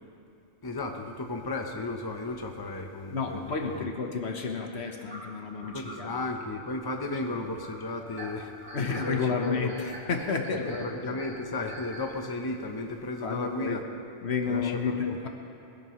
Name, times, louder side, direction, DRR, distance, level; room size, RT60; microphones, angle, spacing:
voice 1, 0.6-3.8 5.7-10.0 10.8-13.8 14.5-15.1, left 2 dB, 20° left, 3 dB, 0.9 m, -34 dB
voice 2, 3.1-6.2 7.2-7.4 8.7-11.2 13.2-13.8 14.2-15.3, left 5 dB, 70° left, 2 dB, 1.5 m, -31 dB
sound 1, 5.1-12.2, right 1 dB, 10° right, 2.6 m, -45 dB
21.5 x 16.0 x 3.2 m, 2.8 s
omnidirectional pair, 1.2 m